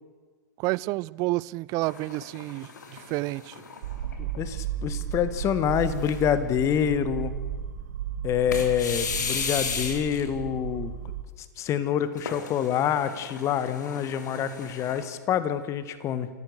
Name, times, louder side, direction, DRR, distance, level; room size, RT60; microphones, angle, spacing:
voice 1, 0.6-3.6, right 21 dB, 35° right, 22 dB, 0.5 m, -30 dB
sound 1, 1.8-4.4 4.9-5.0 5.7-6.4 8.5-10.3 12.2-15.1, left 5 dB, 70° left, 3.2 m, -35 dB
sound 2, 3.8-11.2, right 9 dB, 55° right, 1.6 m, -34 dB
voice 2, 4.2-7.3 8.2-10.9 11.6-16.3, left 9 dB, 30° left, 13 dB, 1.7 m, -27 dB
28.0 x 14.5 x 6.5 m, 1.5 s
figure-of-eight pair, 100°, 10 cm